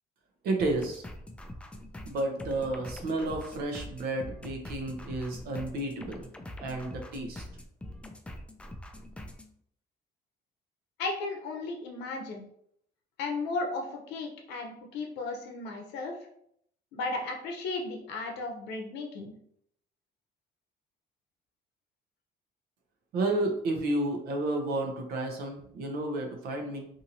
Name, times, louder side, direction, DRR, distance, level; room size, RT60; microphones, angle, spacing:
voice 1, 0.4-1.0 2.0-6.3 6.6-7.4 23.1-26.9, right 2 dB, 70° right, 3 dB, 0.7 m, -31 dB
sound 1, 0.6-9.5, left 1 dB, 5° left, 0.3 m, -44 dB
voice 2, 11.0-12.4 13.2-16.1 16.9-19.3, left 3 dB, 85° left, 1 dB, 0.7 m, -35 dB
2.6 x 2.6 x 2.8 m, 0.69 s
cardioid pair, 110°, 17 cm